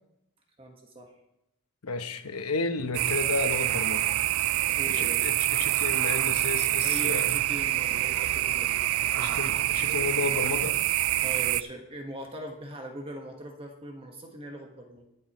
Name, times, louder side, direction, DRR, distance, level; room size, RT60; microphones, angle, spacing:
voice 1, 0.6-1.1 4.8-5.3 6.8-8.8 9.1-9.6 11.2-15.1, right 1 dB, 25° right, 2 dB, 1.5 m, -41 dB
voice 2, 1.8-4.1 4.9-7.4 9.2-10.8, left 3 dB, 75° left, 8 dB, 1.0 m, -32 dB
sound 1, 2.9-11.6, right 15 dB, 65° right, 0.3 m, -26 dB
21.5 x 7.9 x 3.1 m, 0.86 s
head